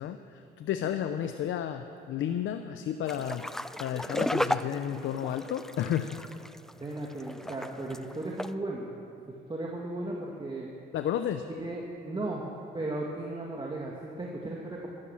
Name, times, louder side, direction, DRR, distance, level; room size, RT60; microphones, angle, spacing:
voice 1, 0.0-3.4 3.8-6.2 10.9-11.5, left 10 dB, 75° left, 8 dB, 0.7 m, -32 dB
sound 1, 3.1-8.5, equal, ahead, 0.4 m, -35 dB
voice 2, 6.8-8.9 9.5-10.7 11.6-12.4 12.7-14.9, right 2 dB, 25° right, -3 dB, 2.0 m, -36 dB
14.0 x 12.0 x 7.3 m, 2.5 s
cardioid pair, 90°, 20 cm